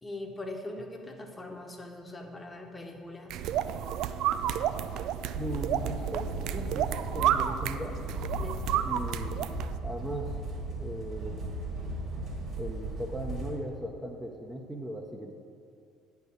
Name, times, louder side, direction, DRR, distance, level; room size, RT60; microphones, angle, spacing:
voice 1, 0.0-3.4 8.4-8.9, left 2 dB, 20° left, 3 dB, 1.2 m, -41 dB
sound 1, 3.3-9.8, right 10 dB, 65° right, 0.3 m, -31 dB
voice 2, 5.3-8.1 8.8-10.4 10.7-11.5 12.6-15.3, right 1 dB, 5° right, 0 dB, 0.9 m, -38 dB
sound 2, 5.3-13.5, right 2 dB, 45° right, 2.3 m, -36 dB
9.0 x 4.7 x 6.7 m, 2.4 s
hypercardioid pair, 60°, 0 cm